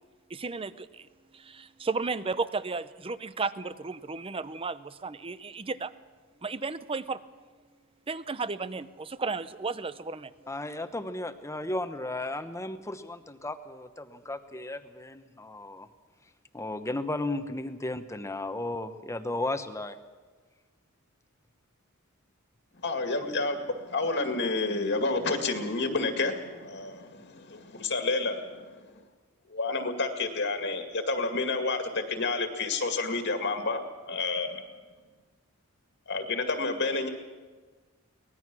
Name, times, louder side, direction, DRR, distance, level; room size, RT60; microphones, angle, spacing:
voice 1, 0.3-1.1 1.3-5.9 6.4-7.2 8.1-10.3, right 4 dB, 25° right, 15 dB, 0.6 m, -34 dB
voice 2, 10.5-15.9 16.5-20.0, left 2 dB, 15° left, 9 dB, 1.0 m, -34 dB
voice 3, 22.8-28.7 29.5-34.6 36.1-37.1, left 3 dB, 55° left, 6 dB, 2.0 m, -30 dB
23.5 x 18.5 x 6.2 m, 1.4 s
head